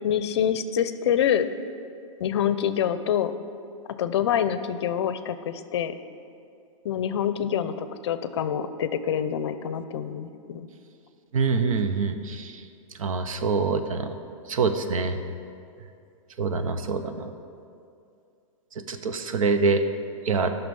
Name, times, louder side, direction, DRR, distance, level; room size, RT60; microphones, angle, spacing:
voice 1, 0.0-1.5 2.2-3.3 4.0-5.9 6.8-10.7, left 9 dB, 55° left, 12 dB, 0.6 m, -26 dB
voice 2, 11.3-12.5 13.0-14.1 14.5-15.2 16.4-17.3 18.9-19.8 20.2-20.5, right 4 dB, 85° right, 8 dB, 0.9 m, -25 dB
13.0 x 5.9 x 5.4 m, 2.5 s
hypercardioid pair, 175°, 17 cm